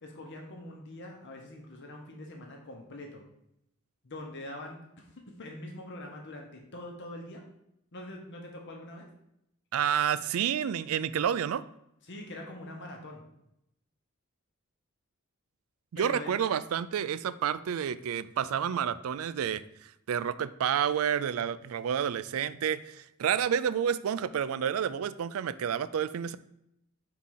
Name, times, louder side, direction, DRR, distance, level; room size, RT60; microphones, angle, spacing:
voice 1, 0.0-3.2 4.0-7.4 7.9-9.1 12.1-13.2 16.0-16.5, left 1 dB, 60° left, 1 dB, 1.0 m, -43 dB
voice 2, 9.7-11.6 15.9-26.4, right 8 dB, 80° right, 15 dB, 0.4 m, -30 dB
4.8 x 3.9 x 5.7 m, 0.79 s
head